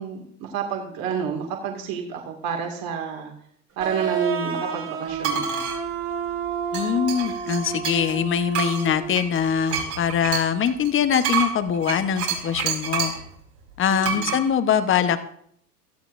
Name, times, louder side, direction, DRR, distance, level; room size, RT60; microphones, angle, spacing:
voice 1, 0.0-3.3 3.8-5.7 13.9-14.3, right 6 dB, 45° right, 2 dB, 2.3 m, -29 dB
sound 1, 3.8-9.3, right 6 dB, 25° right, 2.4 m, -30 dB
sound 2, 5.2-5.8 6.7-8.2 8.5-13.3 14.0-14.4, right 7 dB, 75° right, 5.1 m, -28 dB
voice 2, 6.7-13.1 13.8-15.2, left 8 dB, 25° left, 9 dB, 1.1 m, -23 dB
16.5 x 13.5 x 2.6 m, 0.67 s
hypercardioid pair, 110°, 50 cm